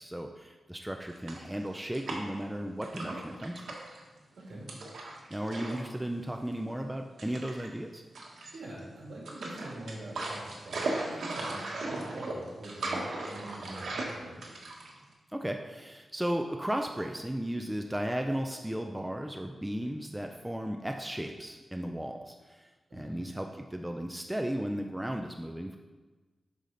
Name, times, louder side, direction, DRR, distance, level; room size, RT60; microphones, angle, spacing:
voice 1, 0.0-3.7 5.3-8.0 15.3-25.8, equal, 5° right, 3 dB, 0.3 m, -35 dB
sound 1, 1.1-2.5 2.8-4.0 4.7-5.9 6.2-6.3 7.2-7.7 8.1-8.8 9.3-15.1, right 2 dB, 80° right, 1.3 m, -37 dB
voice 2, 8.5-14.4 22.9-23.2, right 1 dB, 65° right, -4 dB, 2.5 m, -44 dB
8.2 x 5.6 x 3.8 m, 1.3 s
wide cardioid pair, 165°, 0 cm